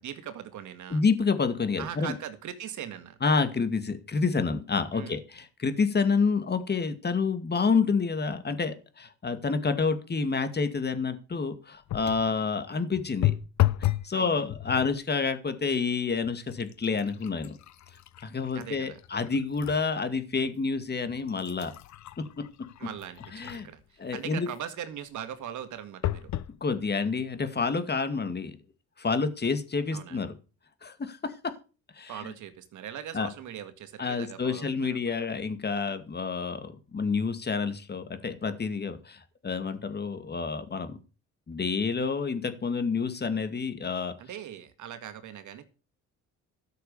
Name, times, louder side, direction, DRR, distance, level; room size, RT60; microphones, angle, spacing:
voice 1, 0.0-1.0 1.8-3.2 4.9-5.2 14.1-14.5 18.5-19.0 22.8-23.8 24.1-26.3 29.9-30.2 32.1-35.1 44.2-45.7, right 9 dB, 75° right, 9 dB, 1.9 m, -40 dB
voice 2, 0.9-2.1 3.2-13.3 13.8-17.6 18.2-21.7 22.2-22.4 23.3-23.7 24.0-24.5 26.6-28.6 29.0-30.3 30.8-31.5 31.9-32.3 33.1-33.3 34.0-41.0 41.5-44.1, left 5 dB, 35° left, 10 dB, 2.2 m, -28 dB
sound 1, 11.9-12.3 13.2-14.1 14.5-15.0 15.7-15.9 16.2-19.8 20.3-20.4 21.1-23.8 26.0-26.5 27.2-27.3 27.6-27.7, left 14 dB, 65° left, 0.8 m, -32 dB
13.0 x 6.8 x 6.9 m, 0.35 s
cardioid pair, 90°, 30 cm